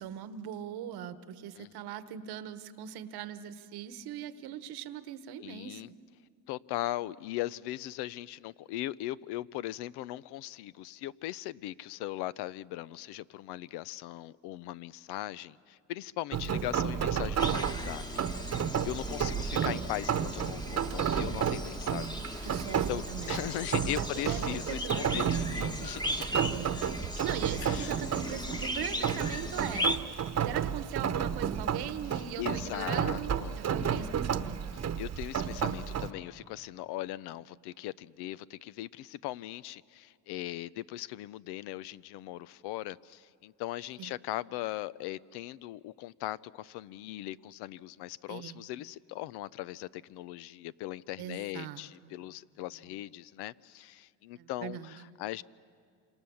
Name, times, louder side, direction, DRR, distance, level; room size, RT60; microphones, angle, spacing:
voice 1, 0.0-5.8 22.4-23.4 24.0-25.3 25.8-26.0 26.5-26.8 27.2-29.9 30.4-34.9 44.0-44.1 48.3-48.6 51.2-52.1 54.4-54.9, right 10 dB, 75° right, 1.2 m, -40 dB
voice 2, 5.4-5.9 6.5-22.5 22.9-26.4 27.6-28.0 30.7-30.8 32.1-34.4 34.7-55.4, left 15 dB, 90° left, 0.6 m, -39 dB
Rain, 16.3-36.1, right 8 dB, 40° right, 1.0 m, -32 dB
sound 1, 17.4-30.0, left 1 dB, 10° left, 1.2 m, -37 dB
27.0 x 26.5 x 7.1 m
cardioid pair, 95°, 39 cm